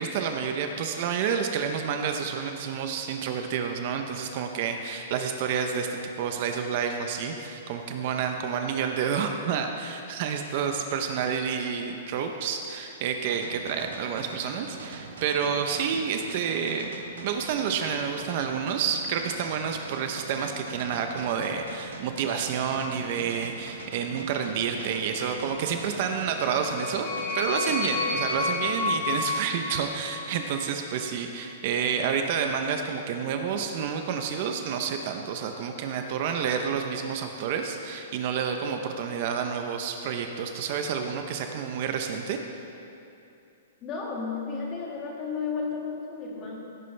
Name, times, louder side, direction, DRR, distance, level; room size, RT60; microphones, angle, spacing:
voice 1, 0.0-16.9 17.2-42.4, right 7 dB, 45° right, 5 dB, 0.7 m, -29 dB
sound 1, 13.3-29.3, right 5 dB, 90° right, 1.1 m, -43 dB
sound 2, 26.2-30.6, left 3 dB, 50° left, 1.6 m, -31 dB
voice 2, 43.8-46.6, left 5 dB, 25° left, -2 dB, 2.1 m, -33 dB
16.5 x 9.4 x 3.3 m, 2.7 s
hypercardioid pair, 160°, 0 cm